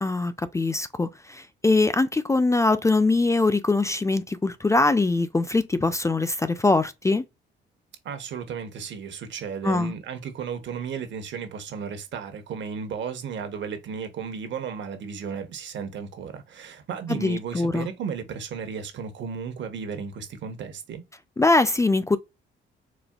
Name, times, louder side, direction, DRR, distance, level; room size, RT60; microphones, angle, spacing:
voice 1, 0.0-7.2 9.6-9.9 17.1-17.9 21.4-22.2, left 3 dB, 15° left, 0.3 m, -22 dB
voice 2, 8.0-21.0, right 6 dB, 65° right, 1.0 m, -34 dB
4.2 x 2.5 x 2.3 m
cardioid pair, 90°, 20 cm